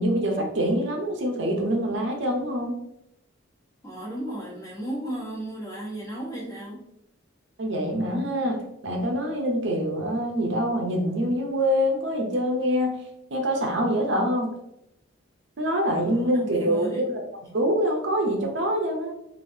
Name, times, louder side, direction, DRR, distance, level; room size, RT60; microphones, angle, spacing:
voice 1, 0.0-2.8 7.6-13.0 13.3-14.5 15.6-17.2 17.5-19.1, equal, 65° right, 1 dB, 0.6 m, -25 dB
voice 2, 3.8-6.8 16.1-17.1, right 1 dB, 15° left, -6 dB, 1.0 m, -35 dB
3.2 x 2.6 x 2.6 m, 0.81 s
head